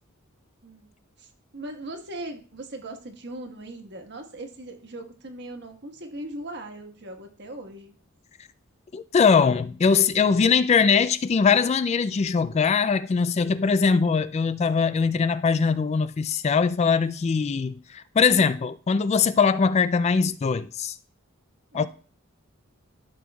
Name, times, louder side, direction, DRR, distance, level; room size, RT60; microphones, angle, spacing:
voice 1, 1.5-7.9 21.7-21.9, right 1 dB, 55° right, 1.4 m, -39 dB
voice 2, 8.9-21.0 21.7-21.9, left 5 dB, 30° left, 0.3 m, -21 dB
13.0 x 6.1 x 2.3 m
head